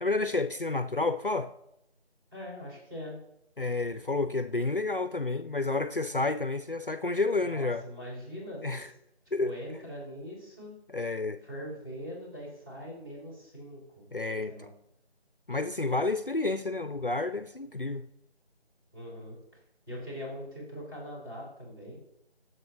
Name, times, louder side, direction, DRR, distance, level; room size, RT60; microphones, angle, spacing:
voice 1, 0.0-1.5 3.6-7.8 8.6-8.9 9.3-9.6 10.9-11.4 14.1-14.7 15.5-18.1, left 3 dB, 55° left, 11 dB, 0.5 m, -30 dB
voice 2, 2.3-3.2 7.4-8.9 9.4-10.7 11.4-14.1 14.5-14.7 18.9-19.4 19.9-22.0, equal, 20° right, -4 dB, 4.6 m, -42 dB
21.0 x 8.0 x 3.0 m, 0.79 s
figure-of-eight pair, 175°, 33 cm